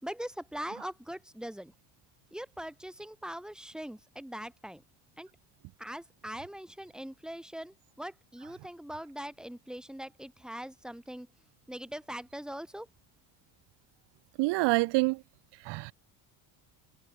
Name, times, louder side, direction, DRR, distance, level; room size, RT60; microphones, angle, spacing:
voice 1, 0.0-1.7 2.3-4.8 5.2-5.3 5.8-11.3 11.7-12.9, equal, ahead, 5.5 m, -41 dB
voice 2, 14.4-15.2 15.6-15.9, right 23 dB, 70° right, 1.0 m, -26 dB
cardioid pair, 155°, 43 cm